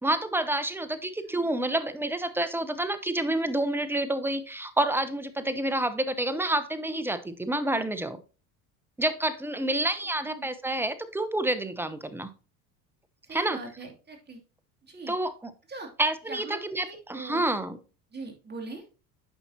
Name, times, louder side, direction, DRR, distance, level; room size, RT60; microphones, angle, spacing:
voice 1, 0.0-8.2 9.0-12.3 13.3-13.6 15.1-15.5 16.0-17.8, right 1 dB, 5° right, 12 dB, 0.8 m, -28 dB
voice 2, 13.2-14.4 14.9-15.1 15.7-15.9 16.3-17.4 18.1-18.8, right 3 dB, 25° right, 1 dB, 2.5 m, -41 dB
9.0 x 5.7 x 2.8 m, 0.34 s
hypercardioid pair, 75°, 44 cm